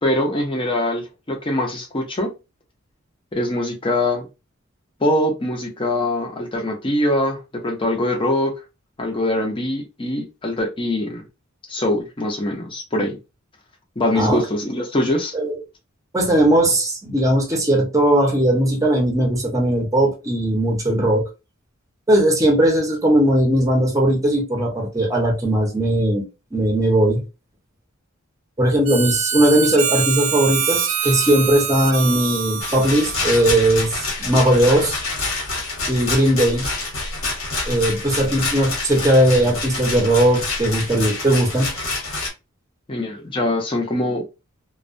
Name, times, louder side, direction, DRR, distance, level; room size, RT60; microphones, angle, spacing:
voice 1, 0.0-2.3 3.3-4.3 5.0-8.5 9.0-11.3 11.7-13.2 14.0-15.3 42.9-44.2, left 1 dB, 25° left, 0.6 m, -23 dB
voice 2, 16.1-21.3 22.1-27.2 28.6-35.0 35.9-36.7 37.7-41.7, right 1 dB, 15° right, 0.7 m, -18 dB
Harmonica, 28.9-34.0, right 7 dB, 65° right, 0.4 m, -25 dB
Rattle, 32.6-42.3, left 3 dB, 85° left, 1.1 m, -27 dB
2.2 x 2.1 x 2.5 m
head